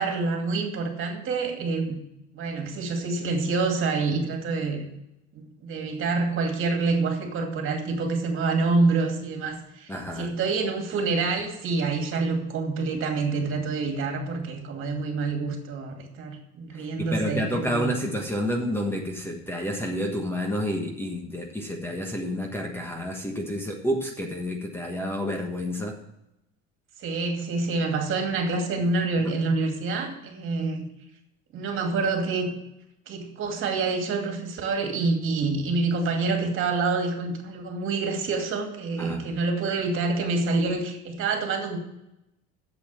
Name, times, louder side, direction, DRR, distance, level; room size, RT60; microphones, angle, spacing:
voice 1, 0.0-2.0 2.3-4.9 5.3-17.9 27.0-30.9 31.5-32.5 33.1-41.8, right 3 dB, 45° right, 3 dB, 2.5 m, -27 dB
voice 2, 9.9-10.3 17.0-26.0 39.0-39.3, equal, 10° left, 2 dB, 1.3 m, -29 dB
8.3 x 7.6 x 7.6 m, 0.86 s
cardioid pair, 140°, 29 cm